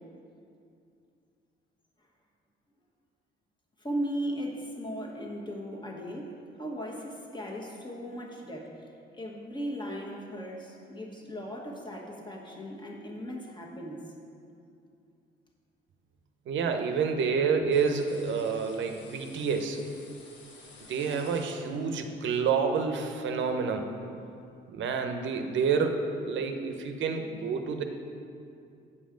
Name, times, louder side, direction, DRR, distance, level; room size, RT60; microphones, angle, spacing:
voice 1, 3.8-8.9 9.2-14.1, equal, 25° left, -1 dB, 1.3 m, -37 dB
voice 2, 16.5-19.8 20.9-23.9 24.7-27.8, right 5 dB, 70° right, 6 dB, 0.7 m, -28 dB
sound 1, 17.7-22.1, left 3 dB, 65° left, 1.2 m, -52 dB
8.4 x 5.3 x 5.1 m, 2.5 s
cardioid pair, 90°, 20 cm